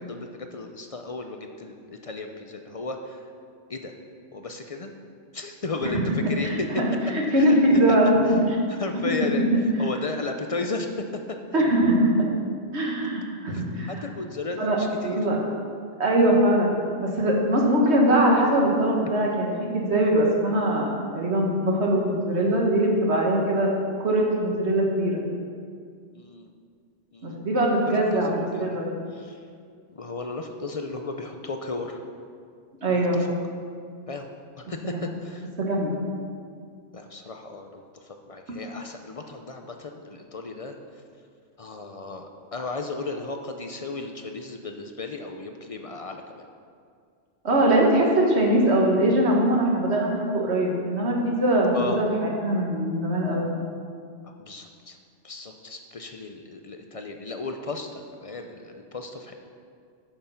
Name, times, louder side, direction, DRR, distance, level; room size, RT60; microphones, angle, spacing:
voice 1, 0.0-3.3 3.7-3.9 4.3-4.9 5.3-6.7 7.3-7.6 8.3-8.4 8.7-11.6 13.5-15.2 26.1-26.5 27.1-27.4 27.9-28.8 29.1-29.4 29.9-32.0 32.9-33.3 34.1-34.3 34.6-35.5 36.9-41.0 41.6-46.5 51.7-52.0 54.2-55.0 55.2-59.3, left 3 dB, 45° left, 4 dB, 0.4 m, -35 dB
voice 2, 6.4-6.9 7.1-8.1 9.5-9.6 11.5-12.3 12.7-13.9 14.6-14.8 15.0-15.4 16.0-23.7 24.0-25.2 27.2-28.9 32.8-33.2 34.9-35.0 35.6-36.0 47.4-52.1 52.4-53.5, right 1 dB, 65° right, -1 dB, 1.8 m, -22 dB
8.7 x 6.7 x 5.7 m, 2.2 s
omnidirectional pair, 1.2 m